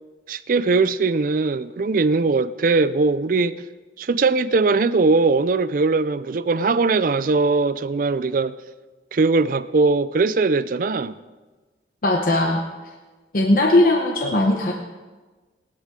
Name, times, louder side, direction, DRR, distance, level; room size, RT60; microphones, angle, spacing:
voice 1, 0.3-3.6 4.0-8.6 9.1-11.1, right 3 dB, 50° right, 0.4 m, -20 dB
voice 2, 12.0-12.7 13.3-14.7, left 1 dB, 50° left, 1.0 m, -18 dB
18.0 x 11.5 x 3.7 m
head